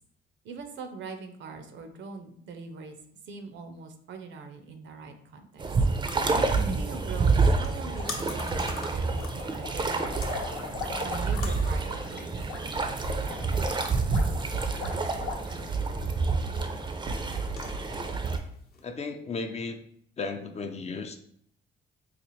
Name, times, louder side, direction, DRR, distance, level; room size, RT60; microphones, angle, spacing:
voice 1, 0.4-3.0 3.3-5.6 6.7-10.1 11.0-14.1, right 4 dB, 70° right, 6 dB, 0.6 m, -43 dB
sound 1, 5.6-18.4, right 3 dB, 25° right, 0.4 m, -28 dB
sound 2, 7.0-18.8, left 4 dB, 50° left, 0.8 m, -47 dB
sound 3, 7.9-8.7 9.1-15.8, left 4 dB, 85° left, 0.8 m, -40 dB
voice 2, 18.8-19.8 20.2-21.2, left 4 dB, 35° left, 6 dB, 0.4 m, -34 dB
4.0 x 2.4 x 3.1 m, 0.65 s
cardioid pair, 90°, 20 cm